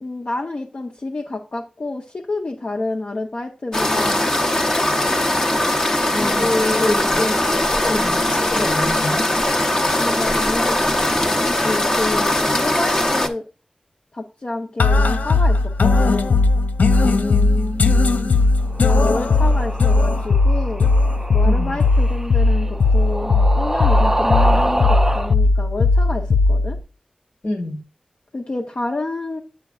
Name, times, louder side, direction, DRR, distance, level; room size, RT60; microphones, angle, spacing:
voice 1, 0.0-4.3 4.8-5.2 6.2-7.0 9.7-11.2 11.4-13.4 14.1-16.3 18.9-20.9 21.3-26.8 28.3-29.4, left 2 dB, 55° left, 0.8 m, -28 dB
sound 1, 3.7-13.3, left 1 dB, 25° left, 0.9 m, -20 dB
voice 2, 6.1-9.3 17.0-18.4 21.4-21.8 27.4-27.8, left 1 dB, 70° left, 1.7 m, -27 dB
sound 2, 14.8-26.8, left 3 dB, 90° left, 0.4 m, -17 dB
sound 3, 18.6-25.3, right 1 dB, 15° right, 0.4 m, -26 dB
8.2 x 7.1 x 2.4 m
wide cardioid pair, 75°, 3 cm